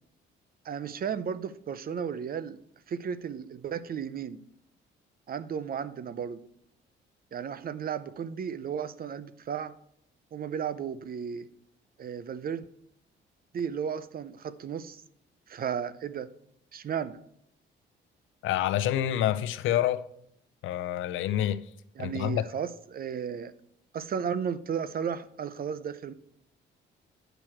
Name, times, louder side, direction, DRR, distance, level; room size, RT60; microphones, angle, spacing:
voice 1, 0.6-2.6 2.9-4.4 5.3-6.4 7.3-9.7 10.3-11.5 12.0-12.6 13.5-15.0 15.5-16.3 16.7-17.2 22.0-23.5 23.9-26.1, right 7 dB, 50° right, 0.6 m, -34 dB
voice 2, 18.4-20.0 20.6-21.6 22.0-22.4, left 12 dB, 80° left, 0.6 m, -27 dB
9.0 x 6.4 x 4.5 m
cardioid pair, 90°, 20 cm